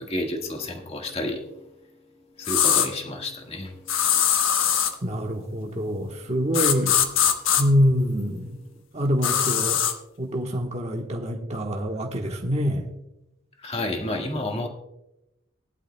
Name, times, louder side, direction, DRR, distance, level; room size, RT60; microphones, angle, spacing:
voice 1, 0.0-1.4 2.4-3.7 6.9-7.0 13.6-14.7, left 1 dB, 30° left, 2 dB, 1.7 m, -30 dB
sound 1, 2.4-2.9 3.9-4.9 6.5-7.6 9.2-9.9, left 9 dB, 75° left, 1.1 m, -21 dB
voice 2, 5.0-6.9 7.6-8.6 8.9-9.8 10.2-12.8, equal, 30° right, 1 dB, 1.2 m, -25 dB
19.0 x 11.5 x 2.2 m, 0.89 s
head